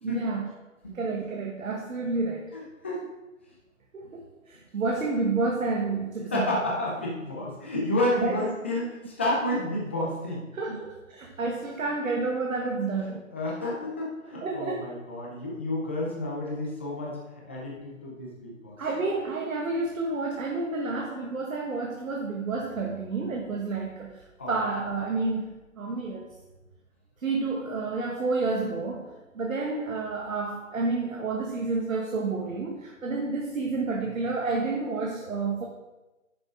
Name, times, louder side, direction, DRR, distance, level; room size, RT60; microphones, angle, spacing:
voice 1, 0.0-0.5 0.9-2.5 3.9-6.5 8.2-8.4 10.5-13.2 14.2-14.9 18.8-26.4 27.2-35.6, right 3 dB, 80° right, 0 dB, 1.4 m, -30 dB
voice 2, 2.5-3.0 6.2-10.8 13.1-17.2 17.5-18.8 23.1-23.2 24.4-24.6, left 1 dB, 10° left, -4 dB, 0.5 m, -30 dB
9.8 x 6.7 x 3.7 m, 1.1 s
hypercardioid pair, 155°, 40 cm